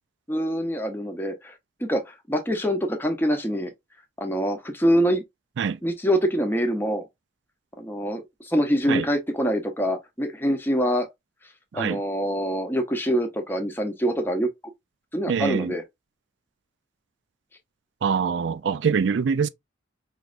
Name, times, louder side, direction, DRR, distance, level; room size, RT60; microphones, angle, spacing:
voice 1, 0.3-1.5 1.8-3.7 4.2-5.2 5.8-7.0 7.8-11.1 11.7-14.5 15.1-15.8, equal, 10° left, 0.7 m, -25 dB
voice 2, 15.3-15.7 18.0-19.5, right 6 dB, 65° right, 0.4 m, -24 dB
4.7 x 3.1 x 2.5 m
head